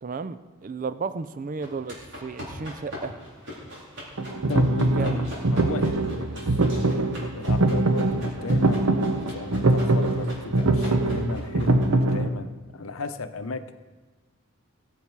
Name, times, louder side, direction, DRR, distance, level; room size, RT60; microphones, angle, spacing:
voice 1, 0.0-3.2 5.0-5.2, right 4 dB, 40° right, 14 dB, 0.4 m, -33 dB
sound 1, 1.6-12.1, equal, 60° right, 4.4 m, -41 dB
sound 2, 4.2-12.3, right 2 dB, 90° right, 0.8 m, -23 dB
voice 2, 4.5-7.0 7.3-8.9 9.3-13.7, left 3 dB, 80° left, 9 dB, 0.7 m, -35 dB
20.5 x 7.4 x 4.7 m, 1.3 s
head